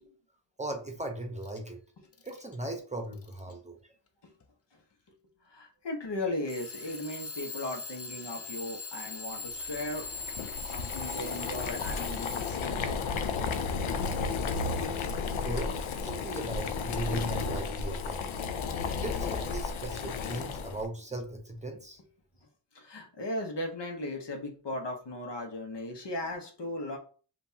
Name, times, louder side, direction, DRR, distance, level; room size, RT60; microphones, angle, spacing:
voice 1, 0.6-1.8 2.2-3.8 15.4-15.7 16.0-18.3 19.0-22.0, right 1 dB, 15° right, 3 dB, 0.9 m, -38 dB
Alarm / Clock, 1.4-1.6 2.1-2.6 3.1-3.5 4.4-4.5 6.5-12.9, left 3 dB, 30° left, 0.5 m, -41 dB
voice 2, 5.5-10.1 10.7-13.0 22.7-27.0, left 1 dB, 60° left, 2 dB, 1.2 m, -37 dB
Boiling, 9.6-20.9, left 5 dB, 90° left, 0.6 m, -33 dB
5.2 x 2.6 x 2.8 m, 0.41 s
cardioid pair, 55°, 47 cm